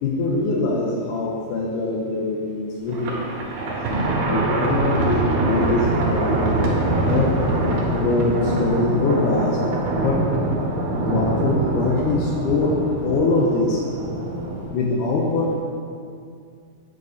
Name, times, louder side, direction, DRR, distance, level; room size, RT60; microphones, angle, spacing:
voice 1, 0.0-3.3 4.3-6.8 7.0-7.4 7.9-9.6 9.9-10.3 10.9-13.8 14.7-15.6, left 3 dB, 90° left, -2 dB, 1.8 m, -23 dB
Thunder, 2.9-14.7, right 2 dB, 80° right, 2.9 m, -24 dB
sound 1, 5.6-9.5, left 3 dB, 45° left, 2.7 m, -35 dB
9.2 x 7.1 x 2.7 m, 2.2 s
omnidirectional pair, 4.5 m